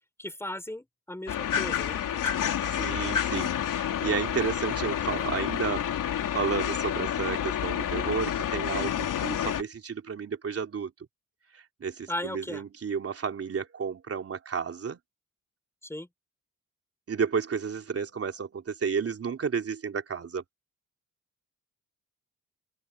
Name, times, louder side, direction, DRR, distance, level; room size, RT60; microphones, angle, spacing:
voice 1, 0.2-2.3 12.1-12.6 15.8-16.1, left 1 dB, 10° left, 6.2 m, -37 dB
sound 1, 1.3-9.6, left 9 dB, 85° left, 3.4 m, -29 dB
voice 2, 2.7-10.9 11.5-15.0 17.1-20.4, right 6 dB, 50° right, 3.2 m, -32 dB
open air
cardioid pair, 95°, 31 cm